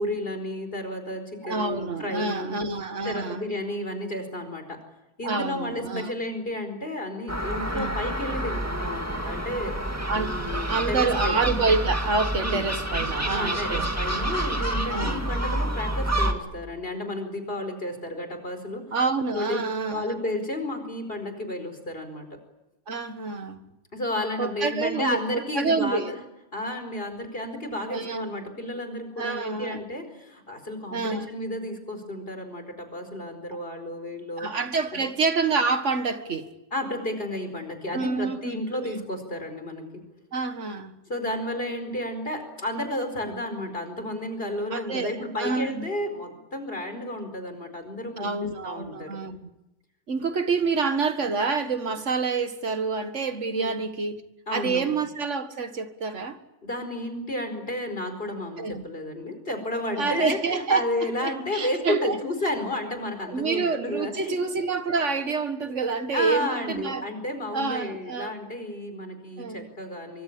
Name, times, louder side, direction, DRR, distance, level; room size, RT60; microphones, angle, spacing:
voice 1, 0.0-2.6 3.0-4.8 5.2-9.7 10.1-11.4 12.4-12.6 13.3-18.8 19.3-19.6 19.9-22.3 23.9-26.2 26.5-34.5 36.7-39.9 41.1-49.2 53.5-53.8 54.5-54.9 56.6-64.3 66.1-70.2, left 1 dB, 50° left, 4.9 m, -32 dB
voice 2, 1.4-3.4 5.2-6.1 7.7-7.9 10.1-13.9 14.9-15.2 18.9-20.2 22.9-23.7 24.4-25.2 25.6-26.2 27.9-28.3 29.2-29.8 30.9-31.3 34.4-36.5 37.9-39.0 40.3-41.0 44.7-45.9 48.2-49.5 50.1-54.2 54.5-56.4 58.6-58.8 59.9-62.2 63.3-67.1 67.5-68.3 69.4-69.7, right 4 dB, 85° right, 2.1 m, -28 dB
Gull seagull, 7.3-16.3, right 1 dB, 15° right, 2.1 m, -28 dB
24.5 x 23.5 x 8.7 m
omnidirectional pair, 1.2 m